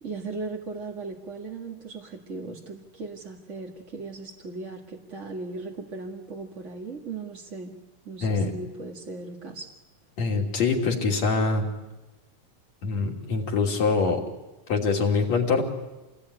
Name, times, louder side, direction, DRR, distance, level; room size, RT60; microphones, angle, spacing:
voice 1, 0.0-7.8 8.0-9.7, right 3 dB, 30° right, -1 dB, 1.6 m, -37 dB
voice 2, 8.2-8.5 10.2-11.7 12.8-14.2 14.7-15.6, left 4 dB, 55° left, 1 dB, 4.2 m, -24 dB
28.5 x 20.0 x 10.0 m, 1.1 s
omnidirectional pair, 3.8 m